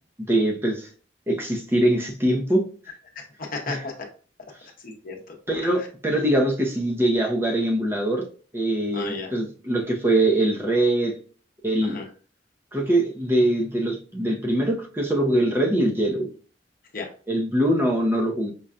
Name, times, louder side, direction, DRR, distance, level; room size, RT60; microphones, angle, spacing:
voice 1, 0.3-0.9 1.3-2.6 3.7-3.8 5.5-8.3 8.5-11.2 11.6-12.0 12.7-16.3 17.3-18.5, right 1 dB, 15° right, -1 dB, 0.6 m, -22 dB
voice 2, 3.1-3.9 4.8-5.4 5.8-5.9 8.9-9.3 11.8-12.1 16.9-17.1, left 3 dB, 50° left, 1 dB, 0.8 m, -34 dB
5.3 x 2.3 x 2.4 m, 0.40 s
head